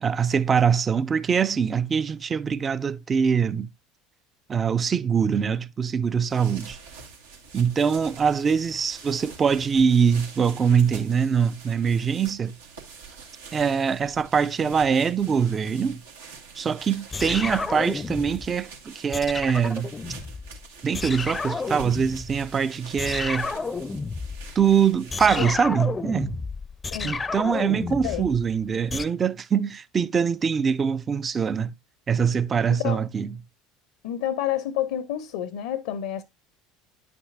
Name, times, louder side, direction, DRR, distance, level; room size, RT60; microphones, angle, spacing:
voice 1, 0.0-3.7 4.5-6.8 7.5-12.6 13.5-16.0 16.6-20.0 20.8-23.5 24.6-26.4 27.0-31.7 32.1-33.4, right 6 dB, 30° right, 0.5 m, -23 dB
sound 1, 6.1-25.7, right 5 dB, 85° right, 1.8 m, -45 dB
sound 2, 17.1-18.6 19.1-20.7 20.9-22.5 23.0-29.1, left 4 dB, 20° left, 0.5 m, -31 dB
voice 2, 34.0-36.2, left 11 dB, 75° left, 0.7 m, -29 dB
9.4 x 6.1 x 2.5 m
hypercardioid pair, 80°, 0 cm